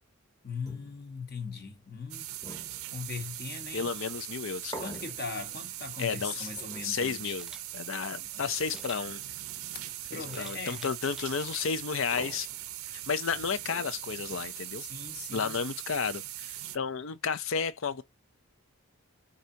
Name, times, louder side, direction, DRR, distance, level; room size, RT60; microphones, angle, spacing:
voice 1, 0.4-2.6 2.9-3.9 4.8-7.4 8.3-8.5 10.1-10.9 14.8-15.6, left 5 dB, 45° left, 1.2 m, -40 dB
sound 1, 0.7-15.7, right 1 dB, 20° left, 1.3 m, -52 dB
sound 2, 2.1-16.8, right 14 dB, 75° right, 0.5 m, -41 dB
voice 2, 3.7-4.9 6.0-6.5 6.8-9.2 10.1-12.5 12.9-14.8 15.3-18.0, left 6 dB, 65° left, 0.5 m, -32 dB
Camera, 7.3-7.6 8.7-9.0 10.3-11.6 12.1-12.4, right 1 dB, 5° right, 0.4 m, -48 dB
4.8 x 2.8 x 2.7 m
head